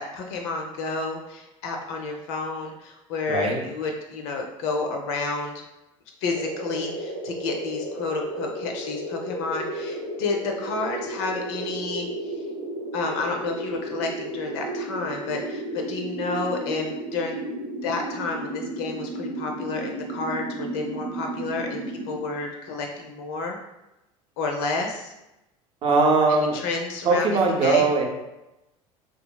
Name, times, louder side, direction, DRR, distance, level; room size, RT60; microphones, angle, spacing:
voice 1, 0.0-5.6 6.2-12.3 12.9-17.4 17.8-23.6 24.4-25.1 26.3-27.9, left 3 dB, 55° left, 2 dB, 0.4 m, -30 dB
voice 2, 3.3-3.6 25.8-26.6 27.0-28.1, right 3 dB, 35° right, 1 dB, 0.6 m, -20 dB
sound 1, 6.3-22.2, right 1 dB, 80° right, 0.6 m, -33 dB
2.7 x 2.5 x 2.2 m, 0.95 s
figure-of-eight pair, 65°, 17 cm